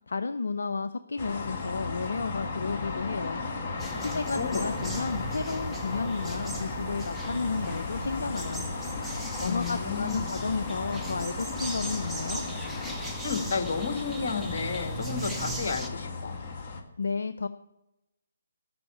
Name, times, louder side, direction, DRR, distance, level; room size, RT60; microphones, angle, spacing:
voice 1, 0.0-3.4 4.0-8.7 9.4-12.4 17.0-17.5, left 4 dB, 70° left, 10 dB, 0.5 m, -32 dB
sound 1, 1.2-16.8, left 3 dB, 35° left, 1.8 m, -35 dB
sound 2, 3.8-15.9, right 1 dB, ahead, 1.0 m, -39 dB
voice 2, 4.0-4.7 9.4-10.3 13.2-16.4, left 5 dB, 50° left, 7 dB, 1.6 m, -32 dB
13.0 x 5.7 x 8.4 m, 0.91 s
figure-of-eight pair, 145°, 0 cm